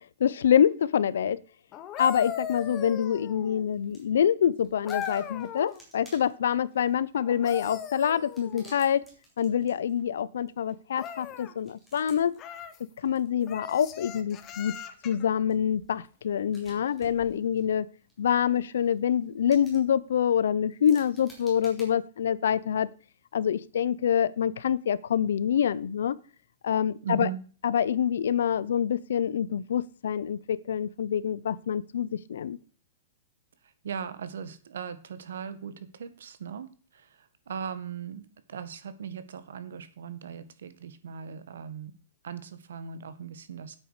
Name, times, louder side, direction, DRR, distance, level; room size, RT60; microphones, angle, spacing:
voice 1, 0.2-1.4 2.0-9.0 9.4-12.3 13.0-14.7 15.0-17.9 18.2-22.9 23.3-26.2 26.6-27.3 27.6-32.6, left 9 dB, 80° left, 20 dB, 0.7 m, -26 dB
sound 1, 1.7-3.7 4.9-5.8 7.2-8.8 10.9-11.5 12.4-12.8 13.5-15.3 17.1-17.3, left 9 dB, 20° left, 0.9 m, -39 dB
sound 2, 3.5-4.2 4.5-21.9, right 1 dB, 5° right, 3.4 m, -58 dB
voice 2, 27.0-27.4 33.6-41.9 42.2-43.8, right 7 dB, 90° right, 12 dB, 1.7 m, -39 dB
9.4 x 8.5 x 5.0 m, 0.39 s
supercardioid pair, 175°, 0 cm